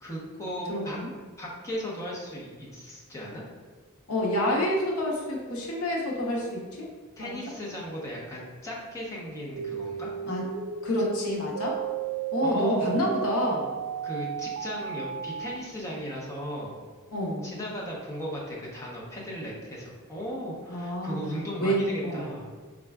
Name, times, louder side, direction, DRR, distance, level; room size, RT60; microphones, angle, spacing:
voice 1, 0.0-1.0 1.4-3.4 7.2-10.1 12.4-12.9 14.0-16.8 17.4-22.5, equal, 15° left, -5 dB, 0.8 m, -36 dB
voice 2, 0.7-1.1 4.1-6.9 7.2-7.3 10.3-10.5 10.8-11.8 12.3-13.7 17.1-17.5 20.7-21.2 21.6-22.3, equal, 75° left, -1 dB, 0.8 m, -28 dB
sound 1, 9.6-15.6, right 8 dB, 70° right, 0.3 m, -34 dB
4.7 x 3.7 x 2.3 m, 1.5 s
head